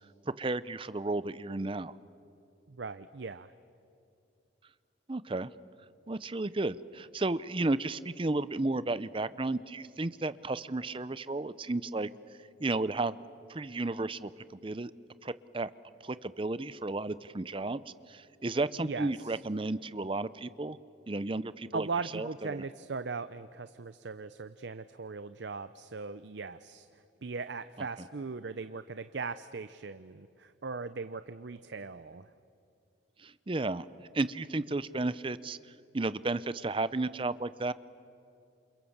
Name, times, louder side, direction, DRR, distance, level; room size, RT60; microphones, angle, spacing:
voice 1, 0.3-1.9 5.1-5.5 6.1-12.1 12.6-13.1 13.5-14.9 15.2-15.7 16.0-17.8 18.1-20.8 21.1-21.9 22.1-22.6 27.8-27.9 33.2-33.8 34.1-35.6 35.9-37.7, right 2 dB, 30° right, 16 dB, 0.6 m, -33 dB
voice 2, 2.7-3.5 18.8-19.3 21.7-26.9 27.2-32.3, right 4 dB, 65° right, 12 dB, 0.6 m, -39 dB
28.5 x 28.0 x 7.3 m, 2.6 s
head